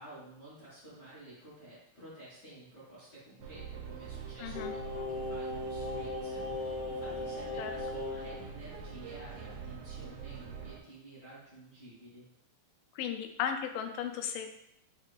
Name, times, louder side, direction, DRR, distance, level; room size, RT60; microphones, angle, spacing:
voice 1, 0.0-12.3, right 1 dB, 45° left, -11 dB, 1.3 m, -51 dB
sound 1, 3.4-10.8, right 6 dB, 85° right, 2.3 m, -45 dB
voice 2, 4.4-4.7 7.6-7.7 13.0-14.5, left 8 dB, 80° left, 6 dB, 2.0 m, -35 dB
Singing, 4.5-8.4 8.7-8.8, left 2 dB, 65° left, 2.5 m, -37 dB
6.4 x 2.5 x 3.3 m, 0.79 s
omnidirectional pair, 4.0 m